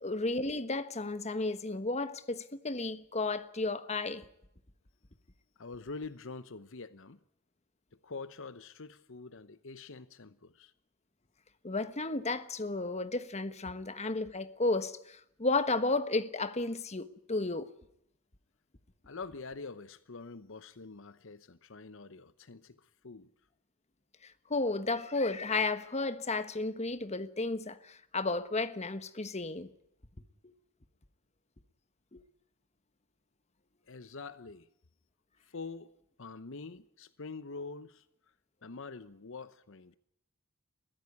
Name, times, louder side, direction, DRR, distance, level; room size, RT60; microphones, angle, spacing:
voice 1, 0.0-4.2 11.6-17.7 24.2-29.7 30.4-30.5 32.1-32.2, left 3 dB, 30° left, 1.3 m, -33 dB
voice 2, 5.6-7.2 8.0-10.7 19.0-23.3 33.9-34.7 35.4-35.9 36.2-38.1 38.6-39.9, left 4 dB, 65° left, 0.9 m, -45 dB
22.0 x 15.5 x 9.6 m
head